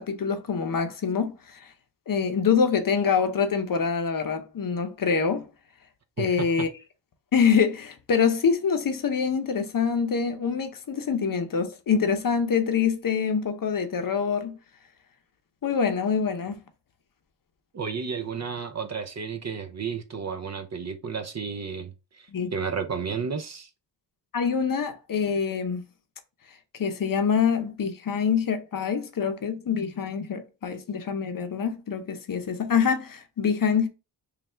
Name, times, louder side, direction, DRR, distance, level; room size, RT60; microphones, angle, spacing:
voice 1, 0.0-1.6 2.1-5.5 6.2-6.7 7.3-14.6 15.6-16.6 22.3-22.5 24.3-25.8 26.8-33.9, left 6 dB, 50° left, 0.7 m, -25 dB
voice 2, 6.2-6.7 17.7-23.7, right 6 dB, 40° right, 0.5 m, -32 dB
3.2 x 2.4 x 4.2 m
cardioid pair, 80°, 43 cm